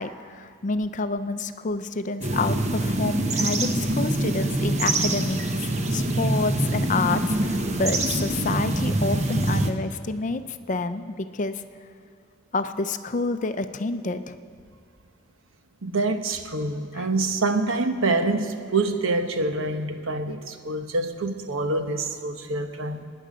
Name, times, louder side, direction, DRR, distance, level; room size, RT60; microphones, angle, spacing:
voice 1, 0.0-10.4 10.7-11.6 12.5-14.4 17.0-17.1, left 3 dB, 40° left, 10 dB, 0.5 m, -28 dB
sound 1, 2.2-9.7, right 1 dB, 35° right, 0.9 m, -24 dB
voice 2, 15.8-23.0, right 2 dB, 85° right, 7 dB, 1.0 m, -26 dB
24.5 x 10.0 x 5.1 m, 2.3 s
head